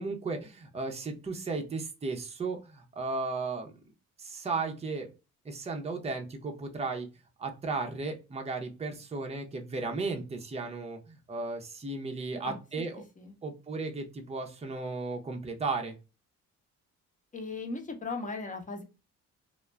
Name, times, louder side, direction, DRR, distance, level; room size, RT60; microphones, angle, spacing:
voice 1, 0.0-3.7 4.2-5.1 5.4-7.1 7.4-13.0 13.4-15.9, right 3 dB, 20° right, 3 dB, 0.6 m, -35 dB
voice 2, 17.3-18.8, left 3 dB, 25° left, 4 dB, 0.8 m, -37 dB
2.3 x 2.1 x 3.1 m, 0.29 s
cardioid pair, 90°, 30 cm